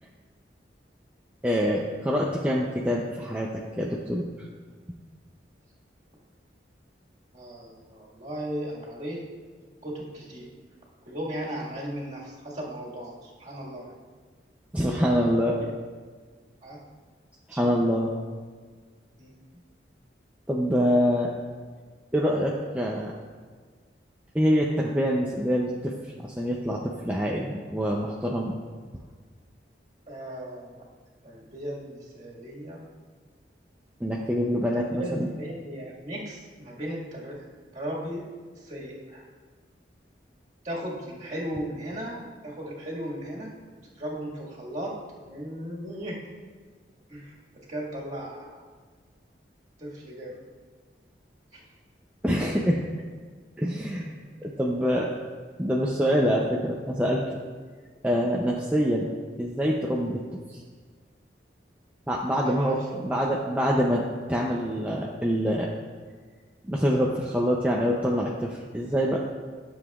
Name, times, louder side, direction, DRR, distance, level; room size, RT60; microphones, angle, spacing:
voice 1, 1.4-4.3 14.7-15.6 17.5-18.1 20.5-21.3 22.1-23.1 24.3-25.9 26.2-28.5 34.0-35.3 52.2-52.8 53.6-55.1 55.6-57.4 58.0-59.1 59.4-60.2 60.5-60.6 62.1-64.0 64.3-65.7 66.7-69.2, equal, 5° right, -3 dB, 0.5 m, -25 dB
voice 2, 7.3-9.2 9.8-10.5 11.0-13.9 14.8-15.3 15.6-15.7 16.6-16.8 17.5-17.7 19.2-19.3 30.1-30.8 31.2-32.8 34.7-37.4 37.7-38.3 38.6-39.2 40.6-43.5 44.0-46.2 47.1-47.4 47.7-48.6 49.8-50.4 51.5-51.6 62.4-63.1, equal, 40° right, -5 dB, 1.9 m, -36 dB
13.0 x 7.1 x 2.4 m, 1.5 s
head